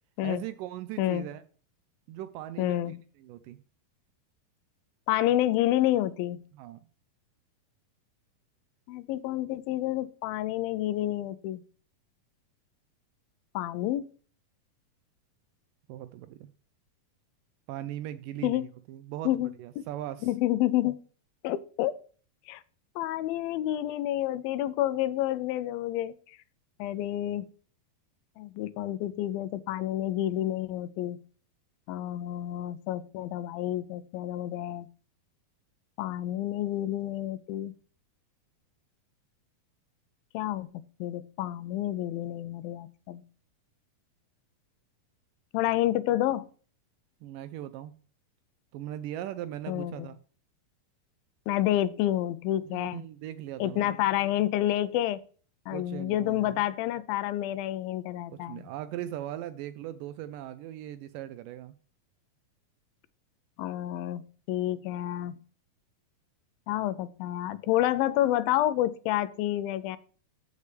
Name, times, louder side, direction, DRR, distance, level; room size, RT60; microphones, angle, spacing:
voice 1, 0.2-1.4 2.1-3.6 6.5-6.8 15.9-16.5 17.7-18.6 18.9-19.3 19.6-20.3 47.2-47.9 48.7-50.2 52.7-54.0 55.7-56.6 58.3-61.7, right 12 dB, 80° right, 12 dB, 2.0 m, -39 dB
voice 2, 2.6-2.9 5.1-6.4 8.9-11.6 13.6-14.1 18.4-18.7 19.3-19.5 19.8-19.9 20.2-21.0 21.4-21.9 22.5-22.6 23.0-26.1 26.8-27.5 28.4-31.2 31.9-34.9 36.0-37.7 40.3-43.2 45.5-46.5 49.7-50.1 51.5-53.0 53.6-55.2 55.7-58.7 63.6-65.4 66.7-70.0, left 13 dB, 85° left, 15 dB, 2.4 m, -29 dB
13.5 x 6.6 x 3.3 m, 0.42 s
omnidirectional pair, 4.2 m